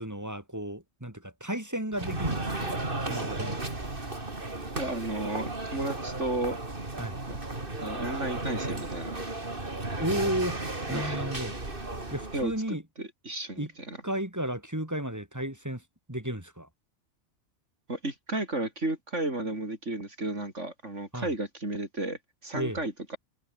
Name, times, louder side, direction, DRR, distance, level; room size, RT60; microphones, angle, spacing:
voice 1, 0.0-3.6 7.0-7.2 10.0-10.6 10.9-11.6 12.1-12.8 13.6-13.7 14.0-15.8 16.1-16.7 21.1-21.3 22.5-22.8, right 1 dB, 15° right, 3.2 m, -33 dB
sound 1, 1.9-12.6, right 2 dB, 45° right, 3.7 m, -34 dB
voice 2, 4.7-6.6 7.3-7.4 7.8-9.2 10.9-11.2 12.3-12.5 13.0-14.0 17.9-23.2, right 2 dB, 85° right, 6.0 m, -33 dB
omnidirectional pair, 1.2 m